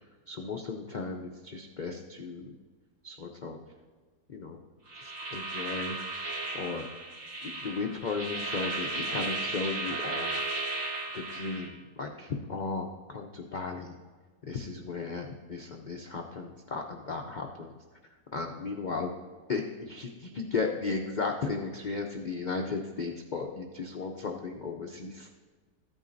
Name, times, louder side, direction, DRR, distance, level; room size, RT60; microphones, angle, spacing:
voice 1, 0.3-2.6 3.0-3.6 4.3-4.6 4.9-6.0 6.5-6.9 7.4-10.4 11.1-14.0 14.4-17.7 18.3-19.1 19.5-25.3, left 4 dB, 90° left, 2 dB, 0.4 m, -35 dB
sound 1, 4.9-11.7, right 2 dB, 85° right, 2.3 m, -35 dB
14.0 x 8.9 x 2.6 m, 1.4 s
omnidirectional pair, 1.7 m